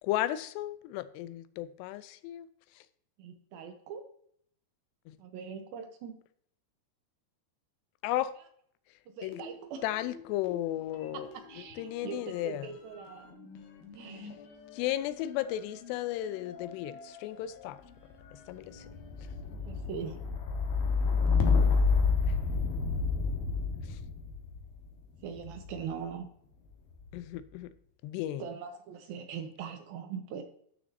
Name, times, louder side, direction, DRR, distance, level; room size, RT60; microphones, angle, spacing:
voice 1, 0.0-2.5 5.1-5.2 8.0-8.3 9.2-9.4 9.8-11.3 11.8-12.7 14.7-17.8 18.5-18.8 23.9-24.0 27.1-27.7 28.0-28.4, left 14 dB, 85° left, 2.7 m, -34 dB
voice 2, 3.2-4.1 5.2-6.2 9.1-9.8 11.1-11.2 11.5-13.3 14.0-14.3 19.7-20.2 25.2-26.3 28.4-30.4, right 7 dB, 75° right, 2.4 m, -41 dB
sound 1, 9.3-10.6 10.9-25.9 26.7-27.3, left 4 dB, 70° left, 3.1 m, -32 dB
13.0 x 6.3 x 2.7 m
omnidirectional pair, 4.8 m